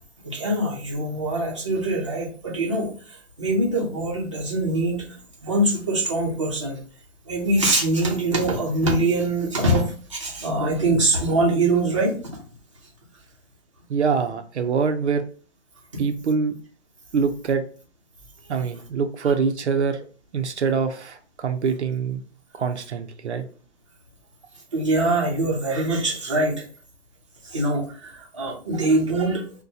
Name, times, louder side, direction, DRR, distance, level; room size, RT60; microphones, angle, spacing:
voice 1, 0.2-6.8 7.3-12.2 24.7-26.5 27.4-29.4, right 2 dB, 25° right, -4 dB, 0.6 m, -23 dB
voice 2, 13.9-15.2 16.0-16.5 17.1-17.6 18.5-20.0 20.3-22.2 22.5-23.4, right 5 dB, 70° right, 7 dB, 0.5 m, -24 dB
3.9 x 2.2 x 2.7 m, 0.41 s
hypercardioid pair, 180°, 36 cm